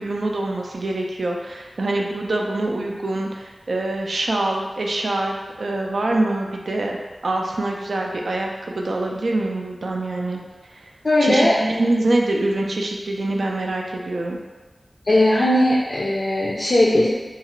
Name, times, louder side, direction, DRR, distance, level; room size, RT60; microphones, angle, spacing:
voice 1, 0.0-7.0 7.2-10.4 10.7-10.8 11.2-14.4, right 2 dB, 70° right, 0 dB, 0.3 m, -24 dB
voice 2, 11.0-11.5 15.1-17.1, left 1 dB, 50° left, -5 dB, 0.4 m, -18 dB
2.4 x 2.3 x 3.0 m, 1.3 s
wide cardioid pair, 85°, 0 cm